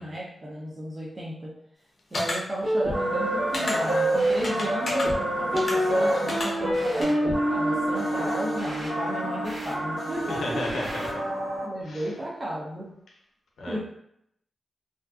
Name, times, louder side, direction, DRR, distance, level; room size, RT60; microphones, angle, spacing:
voice 1, 0.0-1.5 2.1-10.8 11.6-12.9 13.7-13.8, right 1 dB, 25° right, -6 dB, 0.4 m, -34 dB
sound 1, 2.1-2.4 3.5-3.7 4.4-5.1 5.5-5.7 6.3-6.5 7.0-7.1, left 1 dB, 35° left, 0.5 m, -30 dB
sound 2, 2.6-11.2, right 1 dB, 50° right, 0.9 m, -28 dB
sound 3, 2.8-11.7, equal, 80° right, 1.1 m, -32 dB
voice 2, 10.3-11.0 11.8-12.1 13.6-13.8, left 1 dB, 85° left, -2 dB, 0.6 m, -33 dB
2.5 x 2.2 x 2.3 m, 0.74 s
wide cardioid pair, 175°, 0 cm